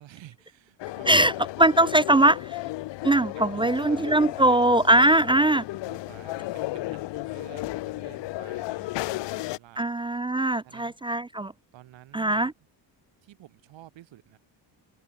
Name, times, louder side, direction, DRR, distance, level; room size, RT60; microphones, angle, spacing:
voice 1, 0.0-1.5 2.2-2.3 3.3-4.5 5.3-9.9 10.6-10.9 11.7-12.5 13.2-14.4, right 14 dB, 90° right, 6.8 m, -50 dB
sound 1, 0.8-9.6, left 18 dB, 75° left, 0.6 m, -34 dB
voice 2, 1.6-2.5 3.0-5.6 9.8-11.5 12.1-12.5, right 1 dB, 15° right, 0.3 m, -21 dB
cardioid pair, 145°, 44 cm